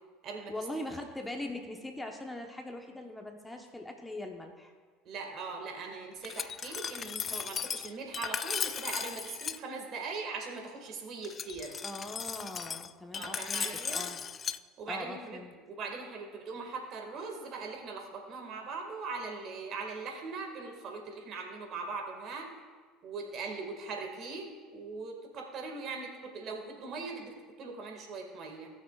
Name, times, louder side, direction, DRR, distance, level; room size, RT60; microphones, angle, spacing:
voice 1, 0.5-4.7 11.8-14.2 14.9-15.5, left 1 dB, 10° left, 3 dB, 1.1 m, -41 dB
voice 2, 5.0-11.8 13.1-14.1 14.8-22.5 23.0-27.3 27.6-28.7, right 4 dB, 50° right, 2 dB, 2.0 m, -40 dB
Glass, 6.2-9.6 11.2-14.6, left 7 dB, 35° left, 0.3 m, -36 dB
18.5 x 6.6 x 2.4 m, 1.5 s
hypercardioid pair, 80°, 0 cm